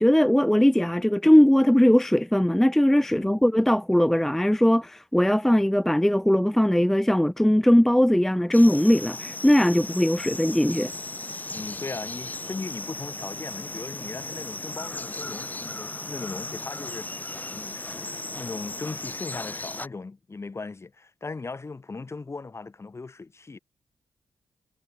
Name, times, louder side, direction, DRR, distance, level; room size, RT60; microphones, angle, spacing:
voice 1, 0.0-10.9, equal, 5° left, 0.4 m, -20 dB
voice 2, 3.1-3.4 11.4-23.6, left 3 dB, 40° left, 6.6 m, -38 dB
sound 1, 8.5-19.9, left 2 dB, 25° left, 2.0 m, -36 dB
supercardioid pair, 45°, 7 cm